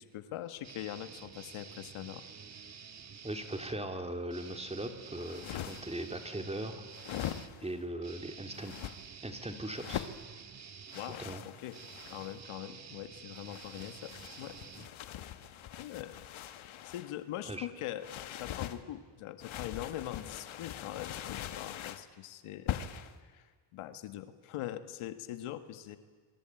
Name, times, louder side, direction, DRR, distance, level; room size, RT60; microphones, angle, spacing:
voice 1, 0.0-2.2 10.9-11.8 12.1-14.1 14.4-14.5 15.8-16.2 16.8-18.1 18.4-22.9 23.2-26.0, left 13 dB, 85° left, 10 dB, 1.8 m, -42 dB
sound 1, 0.6-3.8 4.3-15.4, right 6 dB, 35° right, 1.4 m, -50 dB
voice 2, 3.2-6.8 7.1-8.7 9.2-10.1 11.2-11.4 17.5-17.7, right 1 dB, 10° right, 6 dB, 2.9 m, -39 dB
sound 2, 5.2-6.0 6.9-7.8 8.5-9.0 9.7-10.2 10.9-12.4 13.3-17.1 18.0-18.8 19.4-22.1 22.7-23.1, left 11 dB, 70° left, 1.7 m, -42 dB
27.0 x 24.0 x 9.1 m, 1.5 s
cardioid pair, 100°, 49 cm